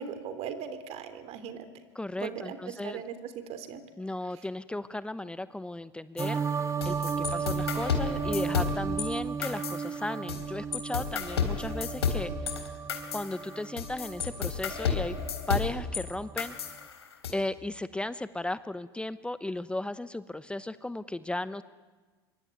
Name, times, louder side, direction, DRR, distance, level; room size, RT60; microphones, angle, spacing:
voice 1, 0.0-1.6 2.2-3.8, right 7 dB, 50° right, 11 dB, 3.4 m, -39 dB
voice 2, 1.9-3.0 4.0-6.4 6.8-12.3 13.1-15.2 15.5-16.5 17.3-21.6, left 2 dB, 10° left, 14 dB, 0.9 m, -35 dB
sound 1, 6.2-9.1 9.4-10.4 10.7-16.0 16.4-17.3, left 6 dB, 85° left, 3.7 m, -32 dB
sound 2, 6.2-15.7 16.1-16.7, right 6 dB, 25° right, 1.2 m, -35 dB
26.0 x 24.0 x 9.3 m, 1.4 s
hypercardioid pair, 80°, 13 cm